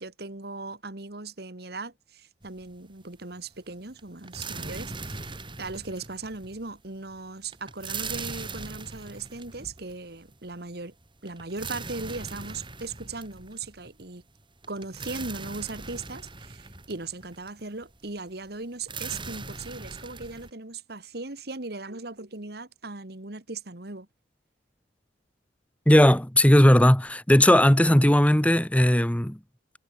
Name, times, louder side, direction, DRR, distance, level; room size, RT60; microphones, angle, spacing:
voice 1, 0.0-10.9 11.2-14.2 14.7-24.1, right 3 dB, 65° right, 2.1 m, -38 dB
sound 1, 2.4-3.1 3.3-20.5, right 4 dB, 30° right, 4.6 m, -40 dB
voice 2, 25.9-29.4, left 1 dB, 10° left, 1.4 m, -18 dB
head